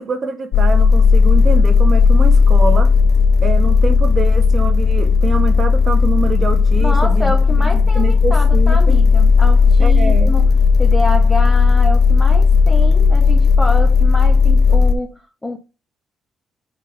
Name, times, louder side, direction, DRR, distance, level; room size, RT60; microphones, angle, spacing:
voice 1, 0.0-2.9 3.4-9.0 9.8-10.4, right 5 dB, 45° right, 1.8 m, -25 dB
sound 1, 0.5-14.9, left 5 dB, 75° left, 0.8 m, -13 dB
voice 2, 6.8-10.5 10.8-15.6, left 1 dB, 10° left, 1.4 m, -26 dB
5.4 x 3.8 x 5.4 m
cardioid pair, 90°, 0 cm